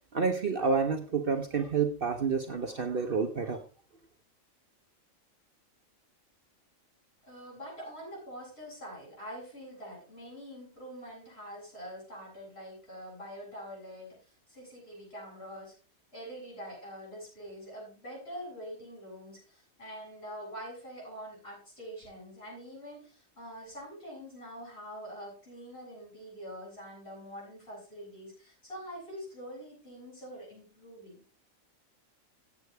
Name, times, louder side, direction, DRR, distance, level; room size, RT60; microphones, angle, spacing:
voice 1, 0.1-3.6, right 5 dB, 45° right, 5 dB, 1.0 m, -29 dB
voice 2, 7.2-15.8 16.1-31.2, equal, 45° left, -3 dB, 8.1 m, -45 dB
15.0 x 8.6 x 3.4 m, 0.37 s
omnidirectional pair, 1.4 m